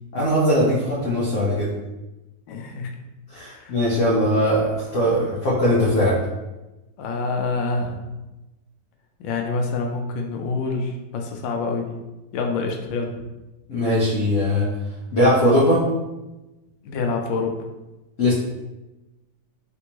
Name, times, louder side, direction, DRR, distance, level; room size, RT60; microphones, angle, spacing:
voice 1, 0.1-1.7 3.3-6.1 13.7-14.6 15.1-15.8 18.2-18.3, equal, 60° left, -7 dB, 0.9 m, -20 dB
voice 2, 2.5-2.9 3.4-3.8 7.0-8.0 9.2-12.0 12.3-13.1 16.8-17.6, left 3 dB, 85° left, 3 dB, 1.3 m, -26 dB
3.4 x 2.6 x 2.9 m, 1.0 s
omnidirectional pair, 2.0 m